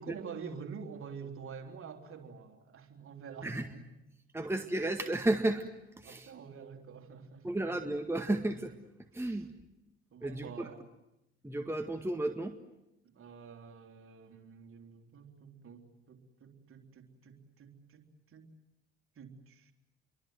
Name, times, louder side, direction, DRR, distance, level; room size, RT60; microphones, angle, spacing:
voice 1, 0.0-4.0 6.0-7.6 9.1-9.4 10.1-10.9 13.0-18.5 19.2-19.7, right 6 dB, 40° right, 3 dB, 3.7 m, -48 dB
voice 2, 4.3-5.6 6.0-6.3 7.4-8.7 9.1-9.5 10.2-10.7 11.4-12.6, right 1 dB, 10° right, 5 dB, 1.9 m, -33 dB
29.5 x 23.5 x 7.8 m, 0.89 s
figure-of-eight pair, 55°, 32 cm